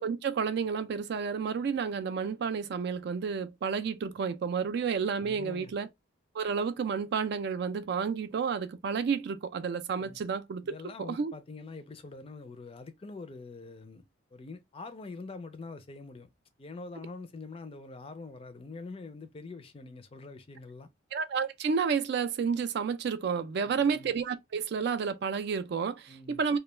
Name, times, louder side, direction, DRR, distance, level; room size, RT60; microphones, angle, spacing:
voice 1, 0.0-5.9 6.3-10.6 11.0-11.3 21.1-26.6, right 6 dB, 60° right, 0.3 m, -31 dB
voice 2, 5.2-5.7 10.0-10.2 10.6-14.0 14.3-16.3 16.6-20.9 23.7-24.1 26.1-26.4, left 3 dB, 30° left, 0.4 m, -45 dB
2.2 x 2.2 x 3.0 m
head